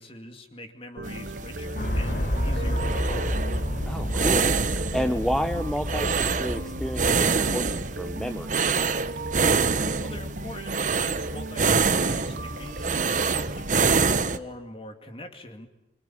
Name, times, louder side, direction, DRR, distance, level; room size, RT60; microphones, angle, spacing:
voice 1, 0.0-3.3 10.0-15.7, left 1 dB, 30° left, 5 dB, 2.4 m, -43 dB
sound 1, 1.0-14.4, right 5 dB, 45° right, 1.0 m, -26 dB
sound 2, 1.0-13.8, right 1 dB, 70° right, 1.9 m, -37 dB
sound 3, 1.8-8.0, equal, 60° left, 3.5 m, -30 dB
voice 2, 3.9-8.5, equal, ahead, 7 dB, 0.9 m, -31 dB
26.0 x 25.0 x 8.6 m, 0.93 s
head